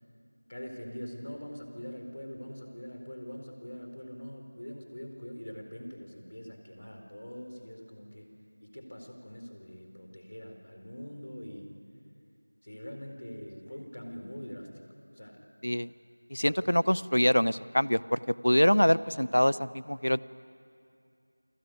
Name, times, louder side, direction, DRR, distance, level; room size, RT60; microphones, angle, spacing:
voice 1, 0.5-8.3 8.6-11.7 12.6-14.7 15.1-15.4 16.4-16.5, equal, 55° left, 4 dB, 4.3 m, -43 dB
voice 2, 16.3-20.2, equal, 85° left, 19 dB, 0.7 m, -25 dB
28.5 x 21.0 x 9.4 m, 2.4 s
figure-of-eight pair, 175°, 0 cm